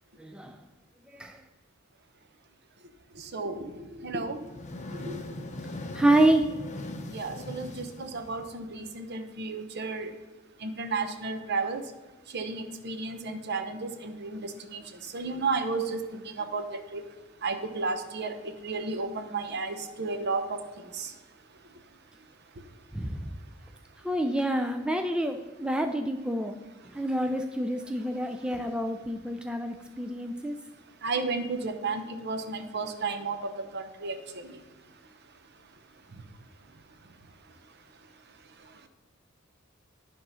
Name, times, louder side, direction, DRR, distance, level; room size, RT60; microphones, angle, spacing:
voice 1, 0.2-0.6 1.1-1.4 5.9-6.5 22.9-23.3 24.0-26.6 26.9-30.6, right 1 dB, 5° right, 5 dB, 0.4 m, -27 dB
voice 2, 3.2-4.4 4.9-5.2 7.1-10.1 10.6-11.8 12.3-14.8 15.1-16.0 16.3-16.7 16.9-17.0 17.4-18.4 18.6-20.6 21.0-21.1 31.0-33.4 33.7-34.2 34.4-34.5, right 4 dB, 55° right, 7 dB, 0.9 m, -33 dB
sound 1, 4.3-8.9, left 1 dB, 35° left, 0.6 m, -40 dB
11.0 x 3.7 x 5.5 m, 1.3 s
head